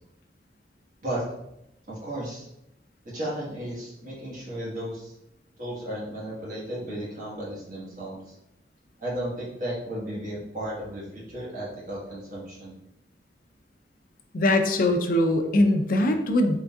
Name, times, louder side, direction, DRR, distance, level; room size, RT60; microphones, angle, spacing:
voice 1, 1.9-2.5 3.0-5.1 5.6-8.3 9.0-12.8, right 1 dB, 45° right, -6 dB, 1.3 m, -34 dB
voice 2, 14.3-16.6, left 1 dB, 50° left, 5 dB, 0.4 m, -22 dB
3.8 x 3.4 x 2.3 m, 0.84 s
head